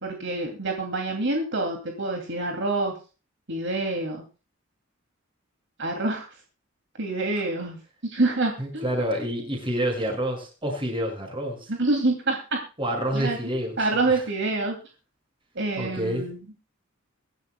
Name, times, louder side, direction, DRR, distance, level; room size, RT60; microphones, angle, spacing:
voice 1, 0.0-2.9 3.5-4.2 5.8-6.3 7.0-8.9 11.7-12.6 13.1-13.4 13.8-14.8 15.6-16.4, right 2 dB, 65° right, 2 dB, 2.7 m, -26 dB
voice 2, 8.6-11.7 12.8-13.8 14.1-14.2 15.8-16.3, equal, 25° right, 2 dB, 6.4 m, -28 dB
24.0 x 11.5 x 2.3 m, 0.34 s
head